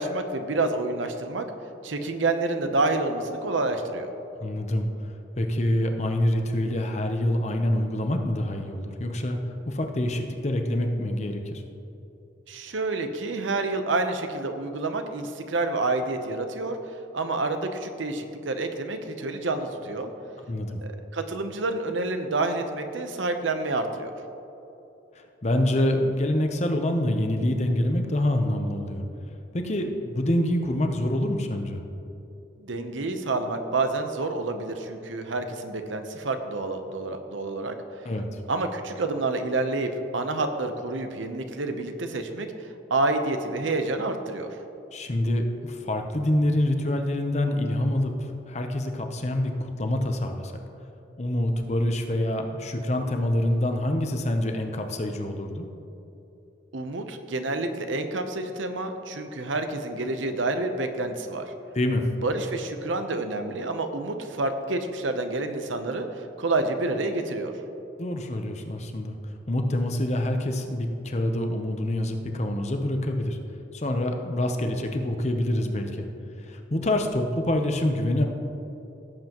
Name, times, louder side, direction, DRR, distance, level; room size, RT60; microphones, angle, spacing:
voice 1, 0.0-1.5 1.8-4.1 12.5-16.8 17.1-20.1 20.8-24.1 32.6-37.7 38.5-42.5 42.9-44.5 56.7-61.5 62.2-66.1 66.4-67.5, right 2 dB, 85° right, 7 dB, 0.8 m, -28 dB
voice 2, 4.4-4.9 5.4-9.4 9.6-11.6 20.5-20.8 25.4-29.0 29.5-31.8 38.0-38.4 44.9-50.5 51.2-55.7 61.7-62.0 68.0-69.2 69.5-73.4 73.7-76.1 76.4-78.2, left 1 dB, 35° left, 5 dB, 0.8 m, -26 dB
17.0 x 7.7 x 3.0 m, 3.0 s
head